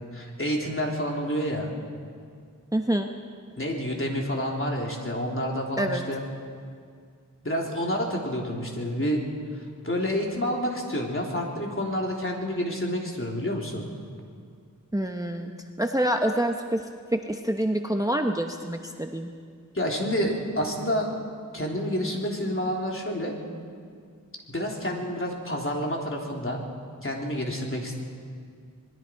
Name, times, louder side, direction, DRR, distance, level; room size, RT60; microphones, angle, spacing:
voice 1, 0.1-1.7 3.6-6.2 7.4-9.2 9.8-13.8 19.7-21.1 21.5-23.3 24.5-26.6 27.0-27.9, equal, 40° left, -1 dB, 3.5 m, -28 dB
voice 2, 2.7-3.1 5.8-6.0 14.9-15.5 15.8-16.8 17.1-19.3, right 1 dB, 10° right, 4 dB, 1.0 m, -26 dB
27.5 x 20.5 x 4.6 m, 2.1 s
wide cardioid pair, 60°, 34 cm